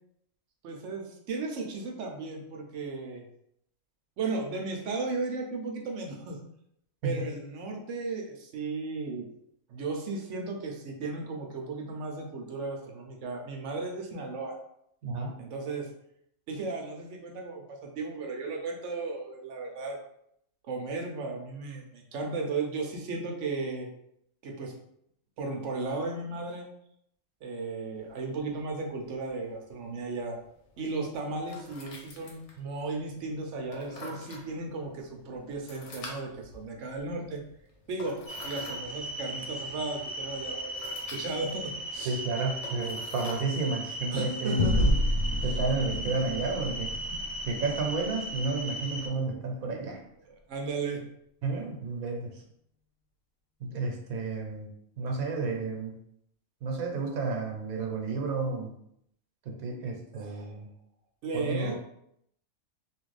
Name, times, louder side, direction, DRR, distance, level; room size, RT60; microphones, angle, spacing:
voice 1, 0.6-3.2 4.2-6.4 7.0-9.3 9.7-14.5 15.4-15.9 16.5-20.0 20.6-23.9 24.4-24.7 25.4-26.6 27.4-30.3 30.8-37.4 37.9-38.2 38.4-42.2 44.1-44.9 45.4-45.5 50.5-51.0 60.1-60.6 61.2-61.7, right 3 dB, 65° right, 1 dB, 0.9 m, -35 dB
voice 2, 15.0-15.4 42.1-45.0 45.4-46.9 47.5-50.0 51.4-52.4 53.6-54.7 55.0-55.9 56.6-58.7 59.4-60.7 61.3-61.7, right 3 dB, 80° right, 1 dB, 1.2 m, -31 dB
sound 1, 28.0-45.5, left 2 dB, 60° left, 1.0 m, -49 dB
sound 2, 38.3-49.1, right 1 dB, 5° left, 0.9 m, -37 dB
sound 3, 44.6-49.4, left 1 dB, 80° left, 1.0 m, -30 dB
3.0 x 2.5 x 3.2 m, 0.73 s
omnidirectional pair, 1.5 m